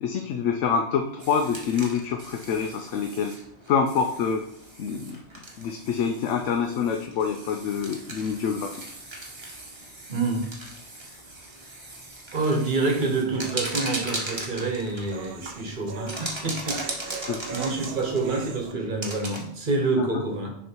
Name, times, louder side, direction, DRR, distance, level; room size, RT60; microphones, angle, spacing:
voice 1, 0.0-3.4 3.7-4.4 4.8-5.2 5.6-8.7 17.3-17.4 20.0-20.2, left 6 dB, 85° left, 4 dB, 0.9 m, -26 dB
sound 1, 1.2-19.4, right 2 dB, 25° right, 1.1 m, -39 dB
voice 2, 10.1-10.5 12.3-20.5, right 3 dB, 45° right, 2 dB, 1.2 m, -27 dB
sound 2, 12.3-18.7, right 5 dB, 60° right, 0.7 m, -41 dB
6.5 x 3.3 x 4.4 m, 0.78 s
omnidirectional pair, 1.2 m